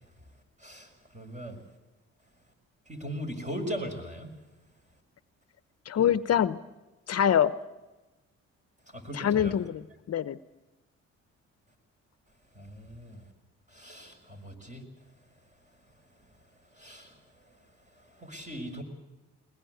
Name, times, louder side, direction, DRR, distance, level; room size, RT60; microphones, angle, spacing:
voice 1, 0.6-1.6 2.9-4.3 8.9-9.6 12.5-13.2 13.7-14.8 16.7-17.2 18.0-18.8, equal, 25° right, 4 dB, 6.4 m, -39 dB
voice 2, 5.9-6.6 7.1-7.5 9.1-9.8 10.1-10.4, left 9 dB, 55° left, 14 dB, 0.9 m, -24 dB
21.5 x 21.0 x 8.1 m, 1.1 s
cardioid pair, 90°, 30 cm